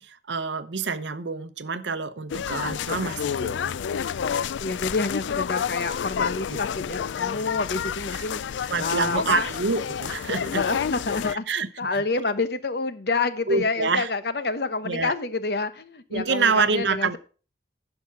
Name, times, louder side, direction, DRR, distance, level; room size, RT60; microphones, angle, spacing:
voice 1, 0.0-3.8 6.5-6.6 8.1-8.2 8.7-10.7 11.3-12.0 13.5-14.1 14.8-15.1 16.1-17.2, right 4 dB, 80° right, 0.8 m, -27 dB
sound 1, 2.3-11.3, left 7 dB, 85° left, 0.4 m, -29 dB
voice 2, 4.6-9.5 10.5-17.2, left 3 dB, 60° left, 0.9 m, -28 dB
11.0 x 5.9 x 5.7 m
head